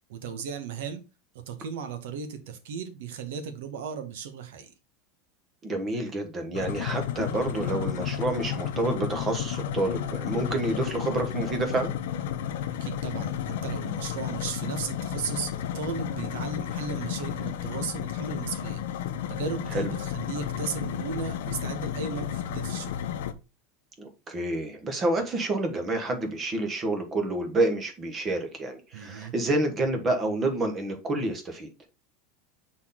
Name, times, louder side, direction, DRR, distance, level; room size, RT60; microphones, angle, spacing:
voice 1, 0.1-1.0 1.5-4.7 10.4-10.8 12.8-18.8 19.3-22.9 28.9-29.3, right 6 dB, 85° right, 1.4 m, -36 dB
voice 2, 5.6-11.9 19.7-19.9 24.0-31.7, right 2 dB, 20° right, 1.3 m, -28 dB
sound 1, 6.5-23.3, left 10 dB, 85° left, 0.8 m, -32 dB
6.2 x 4.2 x 3.7 m
supercardioid pair, 170°, 0 cm